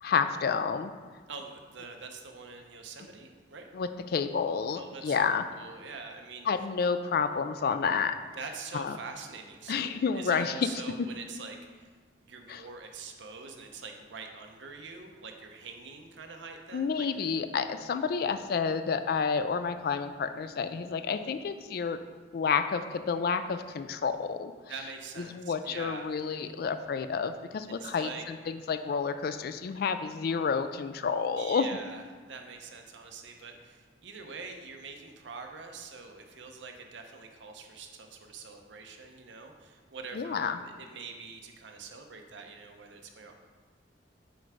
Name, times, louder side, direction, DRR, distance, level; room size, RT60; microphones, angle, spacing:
voice 1, 0.0-0.9 3.7-5.4 6.5-8.2 8.7-9.0 9.7-10.7 12.5-12.6 16.7-22.0 22.3-24.5 25.3-31.7 40.1-40.6, left 5 dB, 55° left, 10 dB, 0.3 m, -30 dB
voice 2, 1.3-3.7 4.8-5.2 5.5-6.5 8.3-11.9 12.2-17.1 24.6-26.1 27.8-28.2 31.2-43.4, right 4 dB, 75° right, 4 dB, 0.7 m, -44 dB
7.8 x 3.3 x 4.9 m, 1.5 s
head